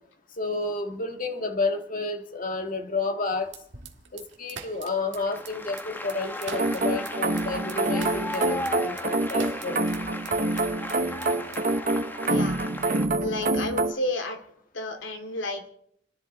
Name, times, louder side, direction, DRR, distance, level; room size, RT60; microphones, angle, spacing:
voice 1, 0.4-3.5 4.1-9.8, left 3 dB, 45° left, 5 dB, 1.6 m, -30 dB
sound 1, 3.5-11.0 11.2-11.8, right 7 dB, 75° right, 1.8 m, -43 dB
Applause, 5.1-13.1, left 1 dB, 10° left, 1.1 m, -36 dB
sound 2, 6.5-13.9, right 2 dB, 45° right, 1.0 m, -26 dB
voice 2, 12.2-12.6 13.2-14.4 14.7-15.7, left 1 dB, 80° left, 5 dB, 2.5 m, -31 dB
29.5 x 11.0 x 4.1 m, 0.69 s
head